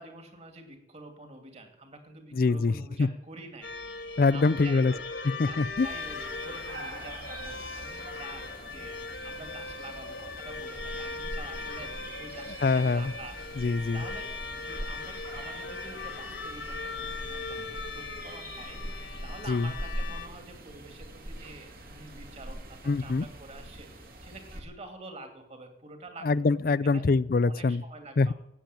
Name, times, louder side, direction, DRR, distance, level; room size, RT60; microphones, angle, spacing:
voice 1, 0.0-4.0 4.3-5.0 5.5-8.9 9.2-13.4 13.9-14.3 14.6-26.4 26.8-27.0 27.4-28.3, right 2 dB, 40° right, 6 dB, 2.6 m, -47 dB
voice 2, 2.3-3.1 4.2-4.9 5.4-5.9 12.6-13.1 13.6-14.0 19.5-19.7 22.9-23.3 26.2-27.8 28.2-28.3, left 3 dB, 55° left, 20 dB, 0.4 m, -24 dB
sound 1, 3.6-20.3, left 3 dB, 85° left, 1.6 m, -39 dB
sound 2, 5.8-24.6, right 1 dB, 55° right, 2.2 m, -43 dB
15.0 x 8.8 x 9.1 m, 0.85 s
head